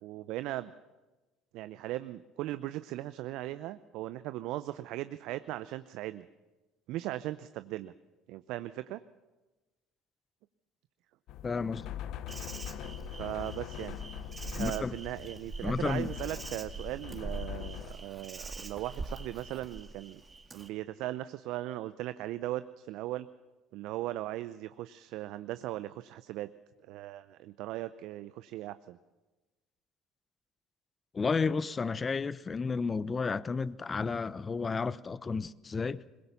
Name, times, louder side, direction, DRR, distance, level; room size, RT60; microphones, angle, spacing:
voice 1, 0.0-0.7 1.5-6.3 6.9-7.9 8.3-9.0 13.2-14.0 14.6-20.2 20.5-23.3 23.7-26.5 26.9-29.0, right 15 dB, 65° right, 0.6 m, -38 dB
sound 1, 11.3-17.9, left 12 dB, 60° left, 0.8 m, -42 dB
voice 2, 11.4-11.9 14.5-15.0 15.6-16.1 31.1-36.0, left 4 dB, 30° left, 0.8 m, -32 dB
Insect, 12.3-20.7, right 3 dB, 25° right, 2.1 m, -43 dB
21.5 x 21.5 x 7.0 m
hypercardioid pair, 65°, 0 cm